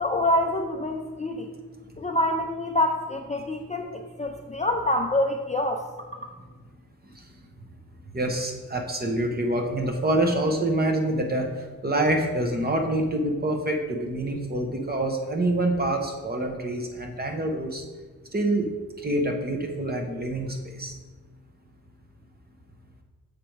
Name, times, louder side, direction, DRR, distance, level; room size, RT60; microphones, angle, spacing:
voice 1, 0.0-1.5 2.0-5.8, left 1 dB, 20° left, 3 dB, 0.4 m, -26 dB
voice 2, 8.1-11.5 11.8-17.8 18.3-18.7 19.0-20.9, right 1 dB, 25° right, 2 dB, 0.9 m, -26 dB
6.8 x 5.1 x 4.6 m, 1.4 s
wide cardioid pair, 150°, 35 cm